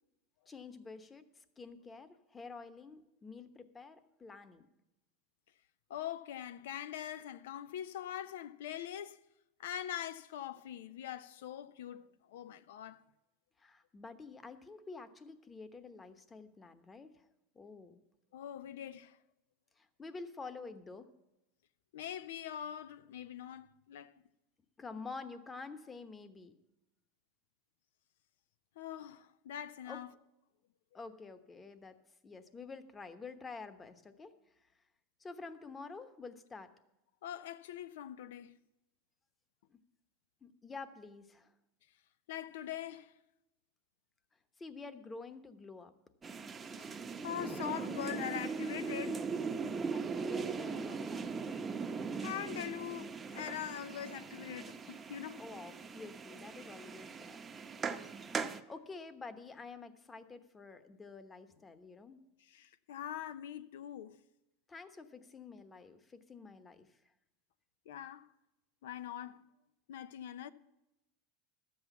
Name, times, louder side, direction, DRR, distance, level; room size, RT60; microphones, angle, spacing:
voice 1, 0.5-4.7 13.6-17.3 17.5-18.0 19.8-21.1 24.8-26.5 29.9-30.0 30.9-32.0 32.2-34.3 35.2-36.7 39.7-39.8 40.4-41.5 44.6-45.9 49.8-51.7 55.4-57.4 58.7-62.2 64.7-66.9, left 4 dB, 20° left, 1.0 m, -49 dB
voice 2, 5.9-9.2 9.6-13.0 18.3-19.2 21.9-24.2 28.8-30.1 37.2-38.6 42.3-43.1 46.8-46.9 47.2-49.2 52.2-55.4 62.4-64.2 67.9-68.3 68.8-69.5 69.9-70.5, left 10 dB, 85° left, 0.5 m, -43 dB
sound 1, 46.2-58.6, right 5 dB, 20° right, 0.7 m, -40 dB
12.5 x 8.0 x 7.0 m
supercardioid pair, 125°, 0 cm